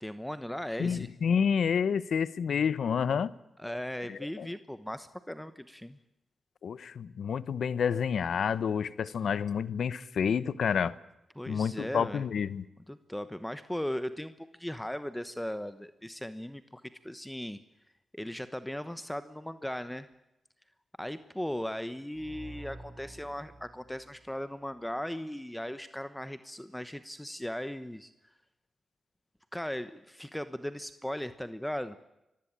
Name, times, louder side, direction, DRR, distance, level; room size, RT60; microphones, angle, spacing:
voice 1, 0.0-1.1 3.6-6.0 11.4-12.2 12.9-17.6 18.1-20.1 21.0-28.1 29.5-32.0, left 1 dB, 5° left, 12 dB, 1.1 m, -37 dB
voice 2, 0.8-3.3 4.1-4.5 6.6-11.0 11.5-12.6, left 7 dB, 75° left, 17 dB, 0.9 m, -29 dB
sound 1, 22.1-24.9, right 1 dB, 30° right, 6.6 m, -49 dB
25.0 x 15.5 x 8.9 m, 0.92 s
cardioid pair, 60°, 0 cm